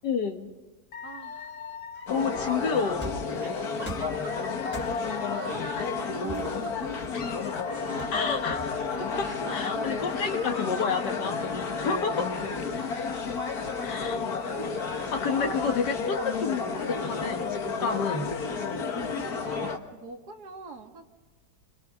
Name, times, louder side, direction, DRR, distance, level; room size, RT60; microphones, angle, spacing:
voice 1, 0.0-0.5 2.1-3.1 8.1-8.8 9.1-11.4 11.8-12.3 13.8-14.4 14.9-18.3, left 5 dB, 80° left, 4 dB, 2.0 m, -30 dB
Dog / Alarm, 0.9-6.8 7.1-9.8 10.1-12.8, left 6 dB, 40° left, 1.0 m, -42 dB
voice 2, 1.0-1.6 2.1-2.7 3.4-4.3 5.3-7.0 7.8-8.5 8.9-11.0 12.3-12.6 19.1-21.1, right 4 dB, 70° right, 3 dB, 2.4 m, -43 dB
sound 1, 2.1-19.8, left 5 dB, 65° left, 1.9 m, -31 dB
sound 2, 3.0-3.4 3.9-4.2 4.7-5.2 6.3-7.4 8.0-9.0, right 1 dB, 5° left, 3.2 m, -40 dB
30.0 x 24.5 x 3.7 m, 1.2 s
omnidirectional pair, 1.8 m